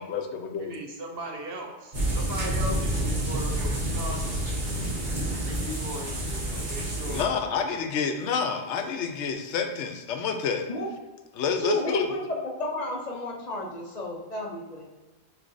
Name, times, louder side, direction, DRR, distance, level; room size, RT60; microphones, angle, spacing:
voice 1, 0.0-0.7 7.1-10.7 11.3-12.1, left 6 dB, 80° left, 5 dB, 0.9 m, -28 dB
voice 2, 0.6-4.4 5.3-7.2, right 1 dB, 60° right, 0 dB, 0.9 m, -38 dB
sound 1, 1.9-7.2, right 1 dB, 45° right, 1.3 m, -29 dB
voice 3, 11.6-12.2 12.6-14.9, left 1 dB, 45° left, -2 dB, 0.6 m, -31 dB
6.2 x 3.1 x 2.6 m, 1.2 s
omnidirectional pair, 1.2 m